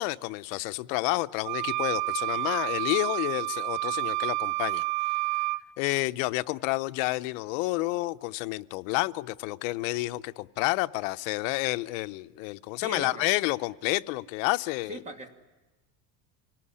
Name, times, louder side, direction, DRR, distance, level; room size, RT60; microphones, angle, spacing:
voice 1, 0.0-4.8 5.8-15.0, left 21 dB, 90° left, 13 dB, 0.8 m, -30 dB
sound 1, 1.4-5.6, right 22 dB, 75° right, 0.7 m, -29 dB
voice 2, 12.8-13.3 14.9-15.3, right 1 dB, 20° right, 5 dB, 2.3 m, -39 dB
26.5 x 18.5 x 9.9 m, 1.2 s
cardioid pair, 155°, 38 cm